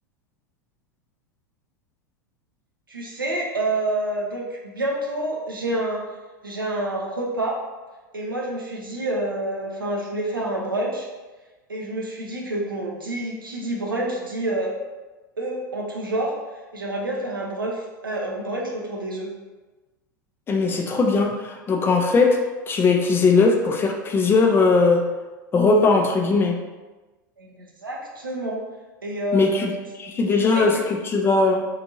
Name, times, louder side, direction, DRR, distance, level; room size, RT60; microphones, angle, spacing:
voice 1, 2.9-6.0 6.4-7.6 8.1-11.1 11.7-14.7 15.4-19.3 27.4-28.6 29.0-29.7 30.3-30.7, right 1 dB, 85° right, -2 dB, 0.6 m, -28 dB
voice 2, 20.5-22.4 22.7-25.1 25.5-26.6 29.3-31.7, left 4 dB, 20° left, 2 dB, 0.4 m, -19 dB
2.8 x 2.5 x 2.6 m, 1.2 s
figure-of-eight pair, 90°, 11 cm